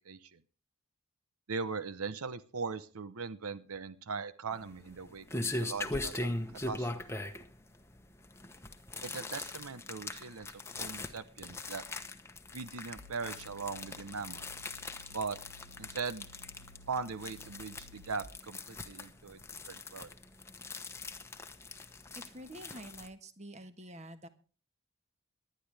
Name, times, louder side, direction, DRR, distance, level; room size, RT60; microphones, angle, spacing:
voice 1, 1.5-5.2 5.6-6.3 6.7-6.9 9.0-10.5 10.7-11.8 12.5-14.4 15.1-15.4 15.8-16.2 16.9-19.4 19.7-20.1, right 5 dB, 80° right, 14 dB, 0.8 m, -39 dB
sound 1, 4.5-23.1, left 2 dB, 10° left, 1.0 m, -41 dB
sound 2, 13.0-18.3, left 2 dB, 50° right, 4.7 m, -56 dB
voice 2, 22.1-24.3, right 1 dB, 30° right, 10 dB, 1.4 m, -48 dB
19.0 x 11.5 x 3.4 m, 0.37 s
head